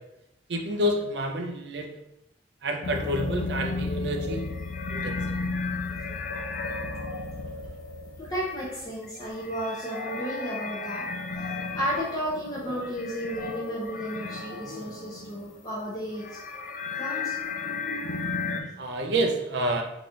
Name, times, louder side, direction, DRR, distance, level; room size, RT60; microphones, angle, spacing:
voice 1, 0.5-2.0 2.6-4.5 4.9-5.2 18.8-19.8, right 1 dB, 70° right, 3 dB, 0.6 m, -28 dB
sound 1, 2.8-15.7 15.9-18.6, left 3 dB, 45° left, 0.4 m, -34 dB
voice 2, 8.2-16.7 17.0-17.6 18.4-18.7, equal, 20° left, -6 dB, 0.9 m, -33 dB
4.0 x 2.9 x 3.8 m, 0.83 s
head